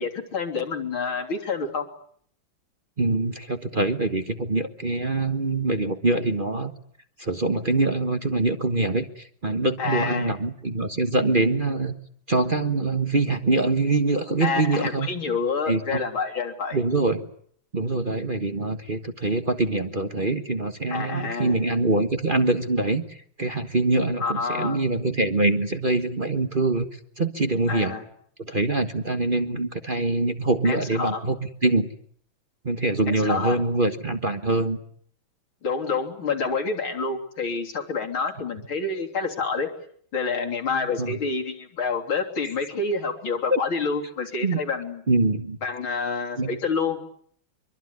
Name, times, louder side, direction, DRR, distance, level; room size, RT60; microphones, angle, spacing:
voice 1, 0.0-1.9 9.8-10.4 14.4-16.8 20.9-21.6 24.2-24.8 27.7-28.0 30.6-31.2 33.1-33.6 35.6-39.7 40.1-45.0 45.6-47.0, left 4 dB, 80° left, 3 dB, 4.2 m, -28 dB
voice 2, 3.0-6.7 7.2-11.9 12.3-15.1 15.7-16.0 16.7-17.3 17.7-26.9 27.2-27.9 28.4-31.9 32.6-34.8 41.0-41.2 43.5-43.6 44.4-44.6 45.1-45.6 46.4-46.5, right 2 dB, 30° right, 8 dB, 1.3 m, -24 dB
25.0 x 23.5 x 9.6 m, 0.62 s
omnidirectional pair, 2.2 m